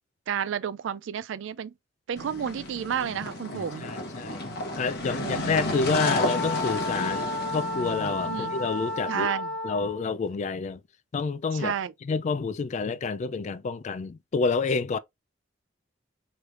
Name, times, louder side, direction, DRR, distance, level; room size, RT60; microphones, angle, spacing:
voice 1, 0.3-1.7 2.1-3.9 5.2-5.5 8.3-8.5 9.1-9.5 11.6-11.9, right 8 dB, 80° right, 0.3 m, -31 dB
sound 1, 2.2-9.2, left 1 dB, 60° left, 1.0 m, -33 dB
voice 2, 3.5-4.4 4.8-9.3 9.6-10.8 11.1-11.8 12.0-15.0, left 4 dB, 40° left, 0.3 m, -29 dB
Wind instrument woodwind instrument, 5.9-10.1, left 2 dB, 5° left, 0.6 m, -32 dB
4.8 x 3.1 x 2.5 m
head